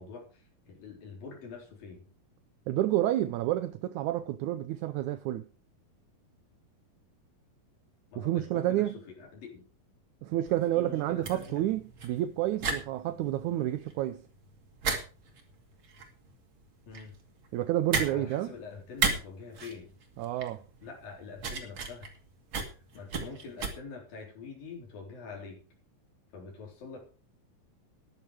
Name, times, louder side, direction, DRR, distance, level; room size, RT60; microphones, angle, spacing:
voice 1, 0.0-2.1 8.1-9.6 10.8-11.6 16.9-17.2 17.9-19.9 20.8-22.1 22.7-25.6 26.3-27.0, left 4 dB, 70° left, 5.5 m, -45 dB
voice 2, 2.7-5.5 8.2-8.9 10.2-14.2 17.5-18.5 20.2-20.6, right 13 dB, 75° right, 1.8 m, -29 dB
sound 1, 10.5-23.7, right 4 dB, 40° right, 2.6 m, -36 dB
13.0 x 11.0 x 4.8 m
omnidirectional pair, 4.1 m